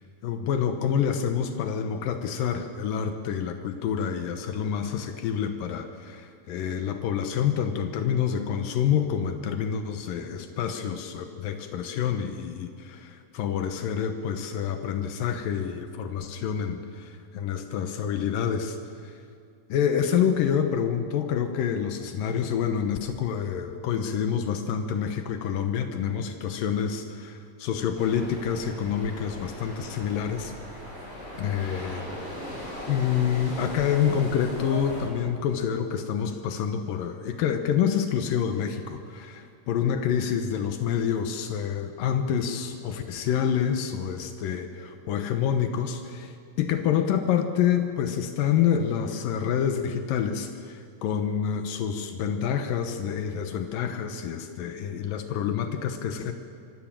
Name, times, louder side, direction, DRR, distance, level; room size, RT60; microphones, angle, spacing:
voice 1, 0.2-18.8 19.0-19.1 19.7-30.5 31.4-32.0 32.9-56.3, left 8 dB, 80° left, 7 dB, 2.7 m, -27 dB
sound 1, 27.9-35.1, equal, 30° left, 8.3 m, -38 dB
25.0 x 16.0 x 7.5 m, 2.3 s
omnidirectional pair, 4.0 m